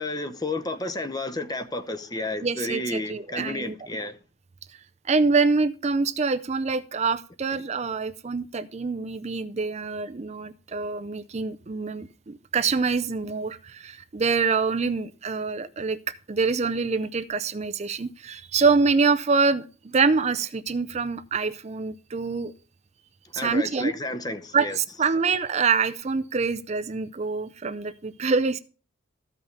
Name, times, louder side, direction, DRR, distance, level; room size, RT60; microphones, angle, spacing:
voice 1, 0.0-4.2 23.3-24.8, left 2 dB, 20° left, 0.8 m, -31 dB
voice 2, 2.4-3.7 4.7-4.8 5.0-16.0 16.3-22.5 23.3-23.9 24.5-28.6, right 4 dB, 30° right, 0.4 m, -25 dB
14.0 x 5.6 x 6.6 m
head